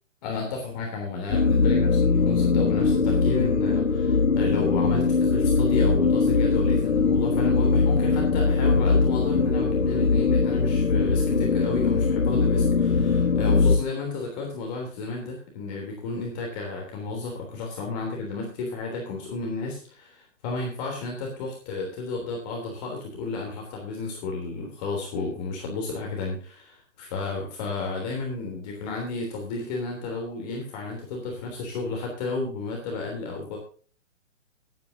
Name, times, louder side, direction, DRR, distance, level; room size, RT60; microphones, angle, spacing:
voice 1, 0.2-33.6, left 3 dB, 30° left, 0 dB, 3.5 m, -32 dB
sound 1, 1.3-13.8, left 4 dB, 75° left, 1.8 m, -21 dB
20.0 x 9.6 x 2.8 m, 0.41 s
hypercardioid pair, 140°, 38 cm